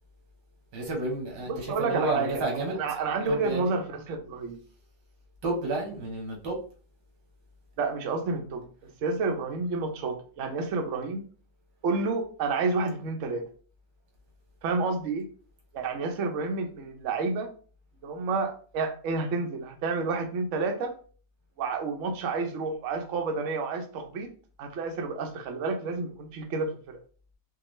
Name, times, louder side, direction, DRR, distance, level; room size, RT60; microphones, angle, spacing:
voice 1, 0.7-2.8 3.3-3.7 5.4-6.6, right 2 dB, 85° right, 0 dB, 1.9 m, -30 dB
voice 2, 1.5-4.6 7.8-11.2 11.8-13.4 14.6-15.3 15.7-17.5 18.0-20.9 21.6-24.3 24.6-27.0, right 3 dB, 60° right, 4 dB, 0.8 m, -30 dB
4.7 x 2.2 x 3.1 m, 0.42 s
omnidirectional pair, 1.9 m